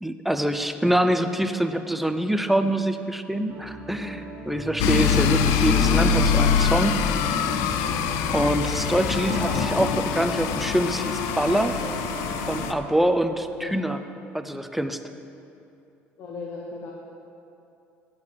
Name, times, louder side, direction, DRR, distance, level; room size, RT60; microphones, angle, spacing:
voice 1, 0.0-7.0 8.3-11.8 12.5-14.0 14.3-15.0, right 1 dB, 5° right, 8 dB, 0.4 m, -25 dB
sound 1, 3.5-13.0, right 2 dB, 50° right, 1.3 m, -37 dB
sound 2, 4.8-12.7, left 8 dB, 85° left, 0.4 m, -24 dB
sound 3, 4.8-10.8, equal, 15° left, 1.2 m, -32 dB
voice 2, 16.2-16.9, left 4 dB, 60° left, -2 dB, 0.9 m, -36 dB
8.3 x 6.8 x 5.2 m, 2.8 s
cardioid pair, 105°, 5 cm